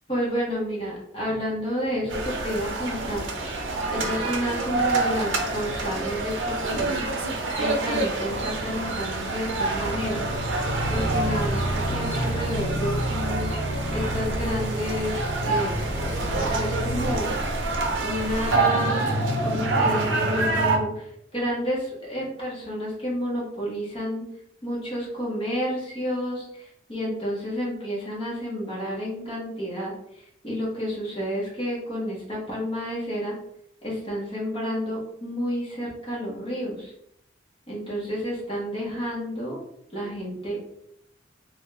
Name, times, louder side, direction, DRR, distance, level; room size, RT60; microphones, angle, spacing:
voice 1, 0.1-3.3 3.9-7.3 7.6-10.2 10.9-13.5 13.9-17.3 18.0-19.1 19.4-24.3 24.6-33.4 33.8-36.9 37.7-39.6 39.9-40.6, equal, 25° left, -6 dB, 1.1 m, -30 dB
sound 1, 2.1-20.8, right 2 dB, 70° right, 0.6 m, -26 dB
3.5 x 2.3 x 3.3 m, 0.76 s
head